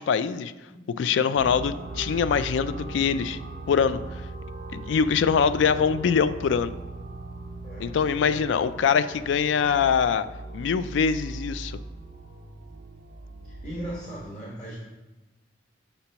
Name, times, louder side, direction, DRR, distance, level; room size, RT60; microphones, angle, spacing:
voice 1, 0.0-0.5 1.0-3.4 3.7-4.0 4.7-6.7 7.8-10.3 10.5-11.8, left 6 dB, 70° left, 13 dB, 0.3 m, -23 dB
voice 2, 0.7-1.3 5.5-5.7 7.6-7.9 8.2-8.4 13.4-14.8, right 1 dB, 40° left, -6 dB, 1.4 m, -39 dB
sound 1, 1.4-14.0, right 2 dB, 55° right, 0.8 m, -39 dB
6.8 x 2.9 x 5.6 m, 1.1 s
head